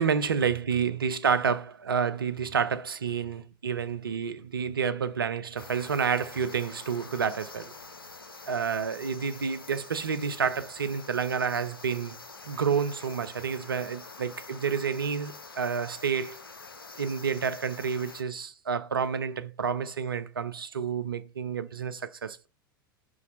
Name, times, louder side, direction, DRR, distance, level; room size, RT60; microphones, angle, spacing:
voice 1, 0.0-7.7 8.4-12.2 12.5-16.4 17.0-22.5, right 6 dB, 80° right, 0.6 m, -29 dB
sound 1, 5.6-18.2, left 3 dB, 85° left, 0.7 m, -46 dB
5.3 x 4.9 x 4.1 m
figure-of-eight pair, 90°, 12 cm